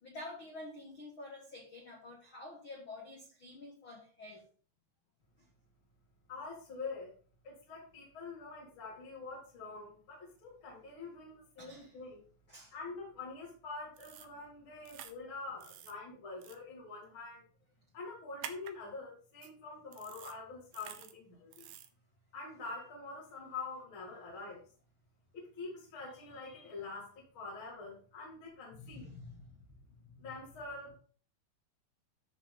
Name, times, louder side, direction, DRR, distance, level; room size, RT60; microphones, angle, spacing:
voice 1, 0.0-4.4 5.4-5.5 11.6-12.0 12.5-12.7 28.7-30.4, left 2 dB, 60° left, -1 dB, 1.3 m, -49 dB
voice 2, 6.3-7.2 7.4-12.3 12.7-17.4 17.9-21.5 22.3-24.6 25.3-29.1 30.2-31.0, left 3 dB, 40° left, -5 dB, 2.2 m, -45 dB
sound 1, 14.0-14.3 14.9-15.1 15.6-15.9 16.4-16.6 18.4-18.7 19.4-19.5 19.9-20.4 20.7-21.1 21.5-21.9, right 10 dB, 85° right, 1.9 m, -48 dB
13.5 x 4.9 x 3.8 m, 0.43 s
omnidirectional pair, 5.1 m